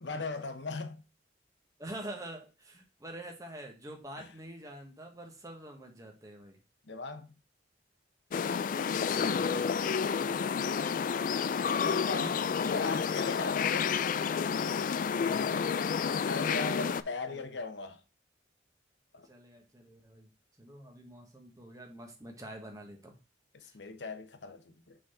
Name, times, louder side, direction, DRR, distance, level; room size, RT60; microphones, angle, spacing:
voice 1, 0.0-1.0 4.2-4.3 6.8-7.3 10.3-10.5 11.8-13.9 16.2-18.0 19.1-19.3 23.5-25.0, left 3 dB, 65° left, 0.9 m, -39 dB
voice 2, 1.8-6.6 9.0-9.7 15.2-15.8 17.3-17.4 19.2-20.3 20.6-23.2 23.6-23.7, right 1 dB, 20° right, 1.3 m, -46 dB
sound 1, 8.3-17.0, left 6 dB, 45° left, 0.3 m, -30 dB
6.1 x 4.0 x 4.3 m
head